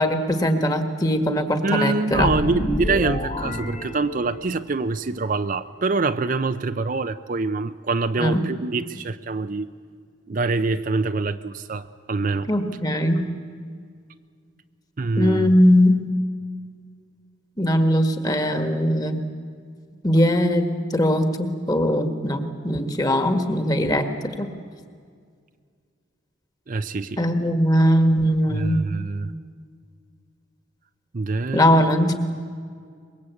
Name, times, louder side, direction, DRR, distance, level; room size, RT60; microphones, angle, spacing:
voice 1, 0.0-2.3 8.2-8.4 12.5-13.3 15.2-16.1 17.6-19.2 20.0-24.1 24.4-24.5 27.2-28.9 31.5-32.2, equal, 20° left, 7 dB, 1.7 m, -20 dB
voice 2, 1.6-9.7 10.3-12.5 15.0-15.5 26.7-27.2 28.5-29.3 31.1-31.8, right 3 dB, 40° right, 10 dB, 0.6 m, -25 dB
sound 1, 2.1-4.7, left 1 dB, 35° left, 1.5 m, -28 dB
23.5 x 22.0 x 8.4 m, 2.1 s
head